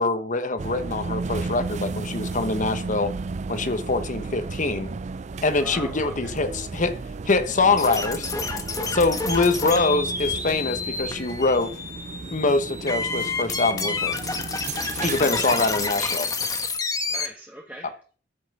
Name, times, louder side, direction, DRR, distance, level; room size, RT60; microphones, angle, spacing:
voice 1, 0.0-3.1 3.5-4.9 5.4-7.0 7.3-8.3 8.9-11.7 12.3-14.2 15.0-16.3, left 3 dB, 40° left, 1.1 m, -24 dB
sound 1, 0.6-15.9, right 3 dB, 40° right, 0.4 m, -34 dB
voice 2, 5.5-6.3 8.9-9.3 14.7-15.5 17.1-18.0, right 1 dB, 10° right, 1.3 m, -42 dB
sound 2, 7.8-17.3, left 4 dB, 20° left, 1.3 m, -29 dB
13.0 x 5.8 x 5.6 m
head